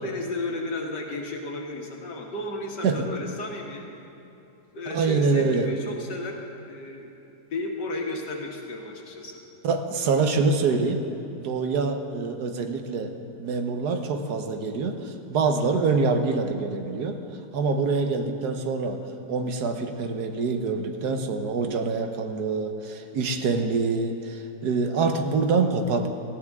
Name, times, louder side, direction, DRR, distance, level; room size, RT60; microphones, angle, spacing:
voice 1, 0.0-3.8 4.7-7.2 7.5-9.4, left 2 dB, 85° left, 0 dB, 2.2 m, -33 dB
voice 2, 4.9-5.7 9.6-11.0 11.4-13.1 13.4-17.2 17.5-19.0 19.3-26.1, right 4 dB, 75° right, 6 dB, 1.5 m, -25 dB
18.5 x 15.0 x 3.6 m, 2.8 s
omnidirectional pair, 1.8 m